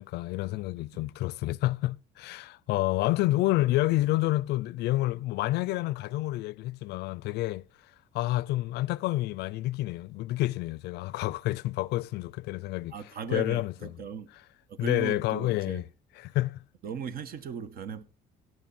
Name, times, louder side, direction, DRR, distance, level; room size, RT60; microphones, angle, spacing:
voice 1, 0.0-7.7 8.1-12.9 13.3-13.7 14.8-15.8 16.2-16.6, left 17 dB, 80° left, 0.4 m, -29 dB
voice 2, 12.9-14.3 14.7-15.8 16.8-18.0, right 7 dB, 60° right, 1.3 m, -37 dB
17.0 x 6.5 x 4.2 m
cardioid pair, 110°, 17 cm